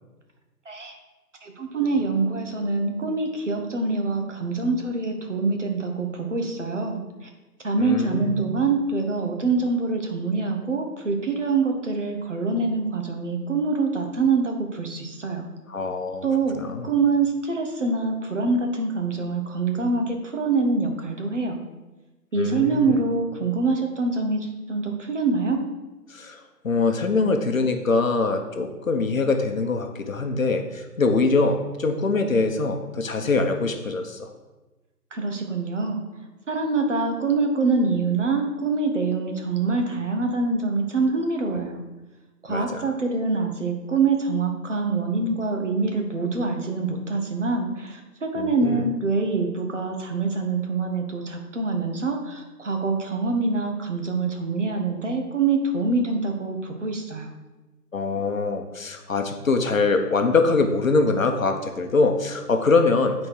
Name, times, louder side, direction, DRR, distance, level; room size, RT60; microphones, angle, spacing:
voice 1, 1.4-7.3 7.6-15.4 16.2-16.6 16.8-21.6 22.3-25.6 35.1-36.0 36.5-41.8 42.4-57.3, right 3 dB, 50° right, 3 dB, 1.1 m, -25 dB
voice 2, 7.8-8.3 15.7-16.2 16.5-16.9 22.3-23.0 26.1-34.3 42.5-42.8 48.4-48.8 57.9-63.1, left 3 dB, 55° left, 5 dB, 0.9 m, -23 dB
8.5 x 4.3 x 4.6 m, 1.1 s
hypercardioid pair, 170°, 48 cm